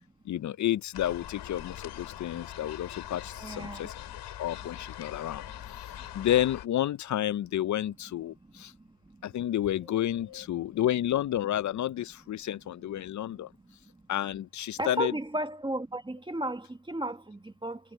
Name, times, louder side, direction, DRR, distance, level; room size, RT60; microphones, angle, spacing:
voice 1, 0.3-4.0 4.4-5.9 6.1-8.7 9.2-13.5 14.1-15.2, left 12 dB, 45° left, 0.4 m, -30 dB
sound 1, 0.9-6.7, left 12 dB, 90° left, 5.4 m, -42 dB
voice 2, 3.4-3.8 14.8-17.8, right 1 dB, 10° right, 1.4 m, -34 dB
cardioid pair, 100°, 40 cm